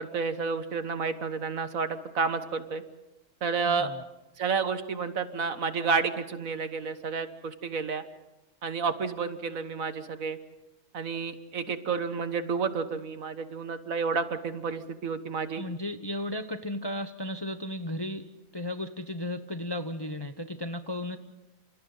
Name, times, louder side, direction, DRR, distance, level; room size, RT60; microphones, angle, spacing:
voice 1, 0.0-2.8 3.4-3.9 4.4-8.0 8.6-10.4 10.9-15.6, right 5 dB, 65° right, 10 dB, 1.7 m, -30 dB
voice 2, 3.7-4.0 15.6-18.2 18.5-21.2, left 1 dB, 20° left, 8 dB, 0.8 m, -34 dB
29.0 x 28.0 x 4.0 m, 1.0 s
omnidirectional pair, 1.6 m